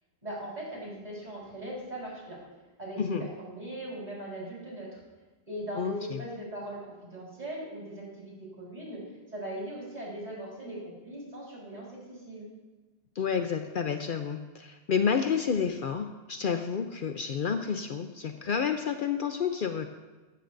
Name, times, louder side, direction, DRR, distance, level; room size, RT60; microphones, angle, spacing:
voice 1, 0.2-2.4 2.8-5.0 5.5-9.0 9.3-12.5, right 1 dB, 40° right, -5 dB, 4.6 m, -39 dB
voice 2, 5.8-6.2 13.2-19.9, left 6 dB, 60° left, 7 dB, 0.7 m, -30 dB
14.5 x 13.5 x 2.6 m, 1.2 s
omnidirectional pair, 1.1 m